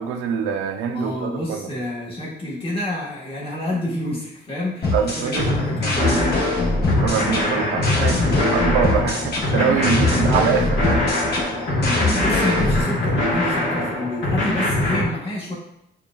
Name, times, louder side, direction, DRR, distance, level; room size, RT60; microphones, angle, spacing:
voice 1, 0.0-1.6 4.9-5.5 7.0-11.2, right 7 dB, 90° right, 6 dB, 0.5 m, -24 dB
voice 2, 0.9-6.5 9.9-10.3 11.8-15.5, left 1 dB, 30° left, -6 dB, 1.4 m, -28 dB
sound 1, 4.8-12.8, left 3 dB, 55° left, 1.2 m, -23 dB
sound 2, 5.4-15.0, left 1 dB, 75° left, 1.3 m, -23 dB
6.8 x 2.3 x 2.3 m, 0.79 s
cardioid pair, 90°, 20 cm